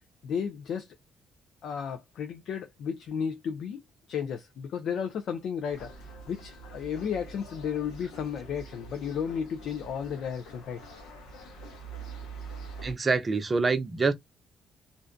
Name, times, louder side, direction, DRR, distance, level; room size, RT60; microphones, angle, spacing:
voice 1, 0.2-0.9 1.6-3.8 4.1-10.8, left 7 dB, 75° left, 0.4 m, -33 dB
sound 1, 5.6-12.9, right 3 dB, 90° left, 0.9 m, -45 dB
voice 2, 12.8-14.1, right 4 dB, 30° right, 0.6 m, -26 dB
2.5 x 2.1 x 2.5 m
cardioid pair, 90°, 0 cm